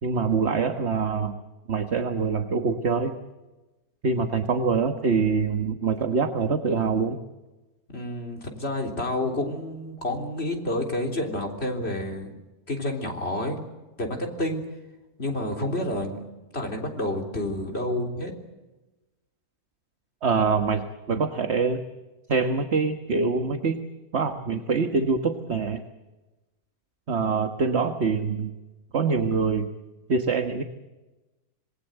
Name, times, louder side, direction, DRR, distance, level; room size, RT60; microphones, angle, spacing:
voice 1, 0.0-1.4 1.7-3.2 4.0-7.2 20.2-21.8 22.3-23.8 24.1-25.8 27.1-28.5 28.9-29.7 30.1-30.6, right 5 dB, 45° right, 7 dB, 1.5 m, -24 dB
voice 2, 7.9-12.3 12.7-13.6 14.0-14.6 15.2-16.2 16.5-18.3, left 1 dB, 40° left, 2 dB, 3.9 m, -29 dB
26.5 x 20.5 x 8.0 m, 1.1 s
omnidirectional pair, 1.6 m